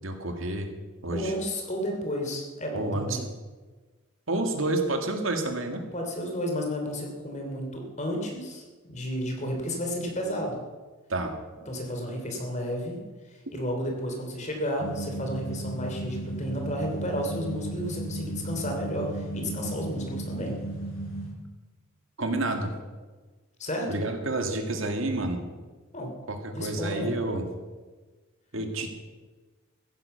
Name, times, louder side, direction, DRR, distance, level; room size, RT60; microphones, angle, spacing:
voice 1, 0.0-0.7 1.0-1.3 2.7-3.2 4.3-5.8 11.1-11.3 22.2-22.7 23.9-25.4 26.3-27.4 28.5-28.9, right 2 dB, 70° right, 5 dB, 2.1 m, -29 dB
voice 2, 1.1-3.2 5.9-10.6 11.7-13.0 13.3-20.5 23.6-24.0 25.9-26.1 26.5-27.1, equal, 35° left, 2 dB, 3.1 m, -32 dB
sound 1, 14.8-21.3, right 1 dB, 70° left, 6.1 m, -35 dB
15.0 x 10.0 x 6.9 m, 1.3 s
head